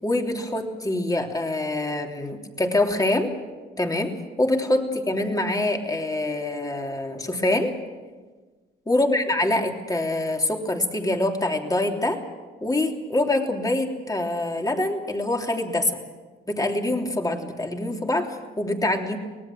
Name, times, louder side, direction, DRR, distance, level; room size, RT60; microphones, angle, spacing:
voice 1, 0.0-3.3 3.8-7.7 8.9-12.2 12.6-16.0 16.5-19.2, left 1 dB, 20° left, 2 dB, 3.2 m, -25 dB
24.5 x 18.5 x 7.6 m, 1.3 s
cardioid pair, 90°, 20 cm